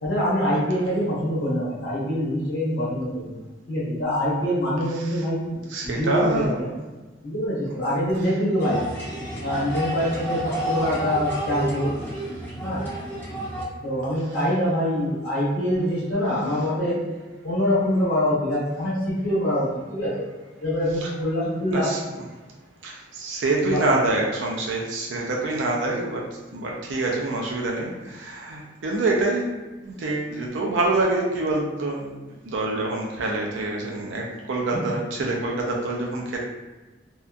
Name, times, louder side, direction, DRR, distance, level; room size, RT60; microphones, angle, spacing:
voice 1, 0.0-3.3 3.7-5.4 5.8-6.7 7.2-8.8 9.4-11.9 12.6-12.8 13.8-17.0 17.4-20.3 20.6-21.9 23.6-24.0 34.7-34.8, equal, 65° left, -8 dB, 1.0 m, -24 dB
voice 2, 4.9-5.3 5.5-6.6 8.2-8.3 12.4-12.5 21.0-21.1 21.7-22.2 22.8-26.2 26.5-29.5 29.8-36.4, right 2 dB, 85° right, -1 dB, 0.4 m, -26 dB
sound 1, 8.6-13.6, right 1 dB, 10° left, 0.6 m, -30 dB
2.7 x 2.2 x 2.4 m, 1.2 s
head